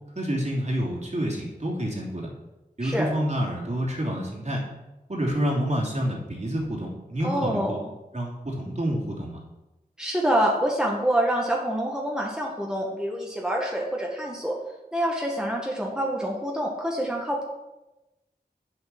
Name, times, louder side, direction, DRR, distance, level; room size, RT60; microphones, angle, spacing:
voice 1, 0.1-2.3 2.8-4.6 5.1-7.8 8.1-9.4, equal, 45° right, -3 dB, 3.0 m, -28 dB
voice 2, 7.2-7.8 10.0-14.6 14.9-17.4, right 1 dB, 5° right, -2 dB, 1.8 m, -26 dB
7.9 x 7.2 x 6.1 m, 1.0 s
wide cardioid pair, 45°, 17 cm